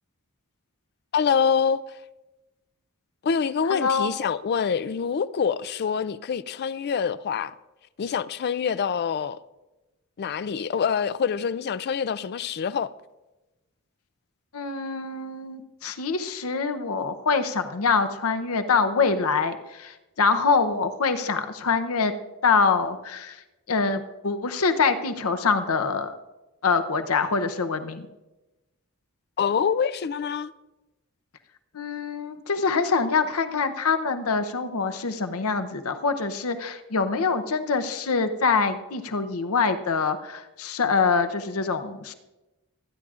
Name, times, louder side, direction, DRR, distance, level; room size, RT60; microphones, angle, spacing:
voice 1, 1.1-2.0 3.2-7.5 8.0-9.4 10.2-12.9 29.4-30.5, left 6 dB, 50° left, 0.4 m, -25 dB
voice 2, 3.7-4.1 14.5-22.1 22.4-23.4 23.7-26.1 26.6-28.1 31.7-42.1, left 4 dB, 75° left, 0.7 m, -25 dB
24.5 x 9.9 x 2.5 m
head